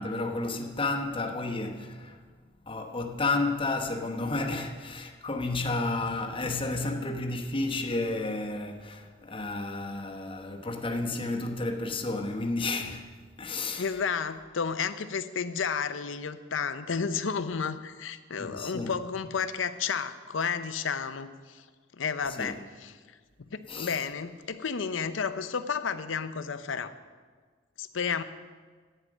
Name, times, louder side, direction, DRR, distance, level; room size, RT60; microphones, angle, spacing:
voice 1, 0.0-2.2 2.6-13.1 13.4-14.0 18.4-19.0 22.2-22.6 23.7-24.0, left 2 dB, 30° left, 1.0 m, -32 dB
voice 2, 13.8-21.6 22.0-22.9 23.5-26.9 27.8-28.2, left 6 dB, 85° left, 0.6 m, -32 dB
11.0 x 9.0 x 6.3 m
head